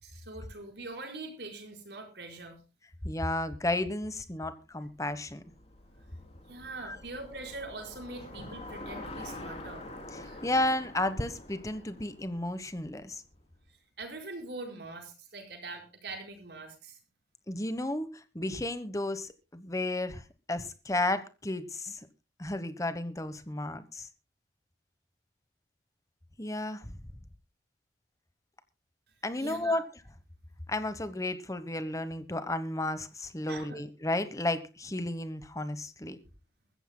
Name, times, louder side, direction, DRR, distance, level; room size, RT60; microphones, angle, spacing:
voice 1, 0.0-2.6 6.5-9.9 10.2-10.4 14.0-17.0 29.4-29.8 33.5-33.8, right 2 dB, 75° right, 4.8 m, -43 dB
voice 2, 3.0-5.4 6.8-7.0 10.1-13.2 17.5-22.1 22.4-24.1 26.4-27.0 29.2-29.9 30.7-36.2, left 1 dB, 20° left, 1.1 m, -33 dB
Bicycle, 4.9-13.3, left 1 dB, 35° left, 3.2 m, -46 dB
23.0 x 14.5 x 2.2 m
head